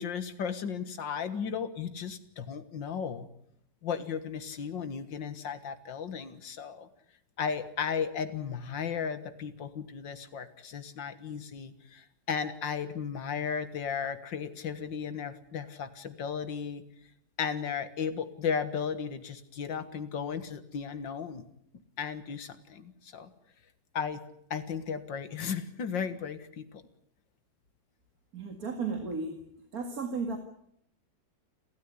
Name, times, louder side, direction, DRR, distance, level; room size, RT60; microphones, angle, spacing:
voice 1, 0.0-3.3 3.8-6.9 7.4-16.8 17.4-21.5 22.0-23.3 23.9-24.2 24.5-26.8, left 6 dB, 90° left, 11 dB, 2.3 m, -35 dB
voice 2, 28.3-29.4 29.7-30.4, right 4 dB, 55° right, 5 dB, 2.4 m, -34 dB
30.0 x 13.5 x 9.8 m, 0.71 s
omnidirectional pair, 1.9 m